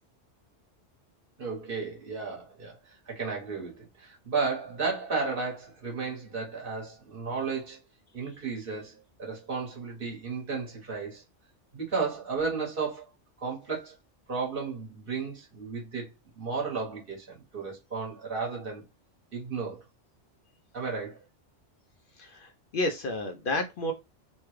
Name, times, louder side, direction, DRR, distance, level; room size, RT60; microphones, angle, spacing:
voice 1, 1.4-7.8 8.1-11.2 11.7-13.0 13.4-13.9 14.3-18.8 19.3-19.8 20.7-21.2, right 4 dB, 50° right, 1.4 m, -33 dB
voice 2, 22.2-23.9, left 1 dB, 60° left, 0.6 m, -31 dB
3.2 x 2.3 x 3.1 m
omnidirectional pair, 1.3 m